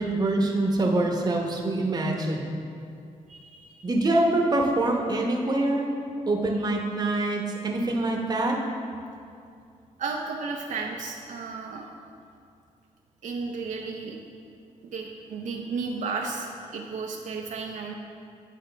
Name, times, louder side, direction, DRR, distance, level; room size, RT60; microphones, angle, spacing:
voice 1, 0.0-2.5 3.8-5.9 6.3-8.6, right 2 dB, 30° right, 1 dB, 0.9 m, -25 dB
voice 2, 3.3-3.9 10.0-11.9 13.2-14.2 14.9-17.9, right 4 dB, 70° right, 0 dB, 0.6 m, -33 dB
9.2 x 4.9 x 3.3 m, 2.4 s
cardioid pair, 100°, 13 cm